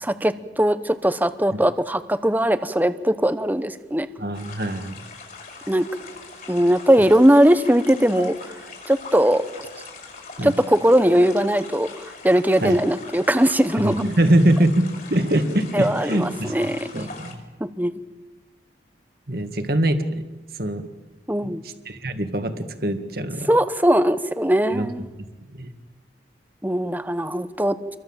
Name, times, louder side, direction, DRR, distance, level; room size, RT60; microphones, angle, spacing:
voice 1, 0.0-4.1 5.7-5.9 6.5-8.3 8.9-9.4 10.4-14.0 15.7-17.1 17.6-17.9 21.3-21.6 23.5-25.1 26.6-27.8, right 1 dB, 10° right, 11 dB, 1.0 m, -20 dB
voice 2, 4.2-5.0 10.4-10.5 12.6-12.8 13.8-17.3 19.3-20.0 20.6-20.8 21.4-23.5 24.7-24.9 25.6-25.7, right 1 dB, 55° right, 7 dB, 2.1 m, -23 dB
sound 1, 4.3-17.3, left 4 dB, 50° left, 5.6 m, -41 dB
29.0 x 23.0 x 7.4 m, 1.2 s
head